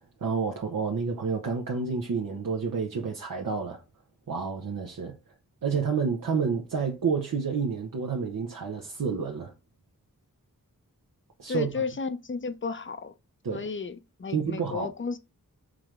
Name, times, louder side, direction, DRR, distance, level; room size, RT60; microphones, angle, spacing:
voice 1, 0.2-3.8 4.3-5.2 5.6-9.5 11.4-11.7 13.4-13.7 14.3-14.9, right 5 dB, 70° right, 0.7 m, -29 dB
voice 2, 11.5-13.1 13.5-15.2, left 4 dB, 35° left, 0.5 m, -33 dB
4.8 x 3.1 x 2.4 m
wide cardioid pair, 50°, 34 cm